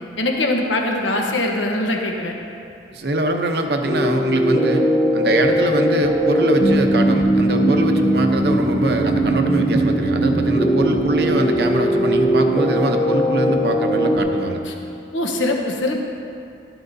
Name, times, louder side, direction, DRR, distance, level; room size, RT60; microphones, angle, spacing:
voice 1, 0.2-2.3 14.6-14.7 15.1-16.0, left 2 dB, 85° left, 1 dB, 1.1 m, -22 dB
voice 2, 2.9-4.9 5.1-14.6, right 1 dB, 60° right, 4 dB, 0.8 m, -23 dB
sound 1, 3.8-14.2, right 1 dB, 25° left, 1.3 m, -19 dB
12.5 x 12.0 x 2.7 m, 2.6 s
head